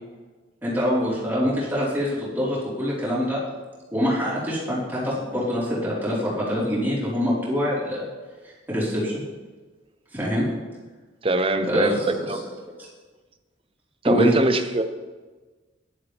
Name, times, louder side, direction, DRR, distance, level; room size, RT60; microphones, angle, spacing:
voice 1, 0.6-3.4 3.9-8.1 8.4-9.2 10.1-10.5 11.7-12.3 14.0-14.3, equal, 10° right, -8 dB, 4.3 m, -25 dB
voice 2, 11.2-12.4 14.0-14.8, right 2 dB, 30° right, 8 dB, 0.8 m, -22 dB
15.0 x 11.5 x 3.5 m, 1.3 s
head